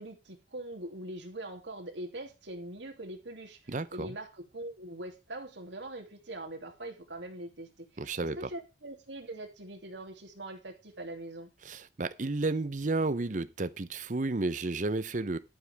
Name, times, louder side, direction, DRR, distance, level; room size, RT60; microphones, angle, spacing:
voice 1, 0.0-11.5, right 1 dB, 80° right, 2.8 m, -42 dB
voice 2, 3.7-4.2 8.0-8.5 11.6-15.4, right 3 dB, 45° right, 0.7 m, -32 dB
11.5 x 9.1 x 3.5 m
head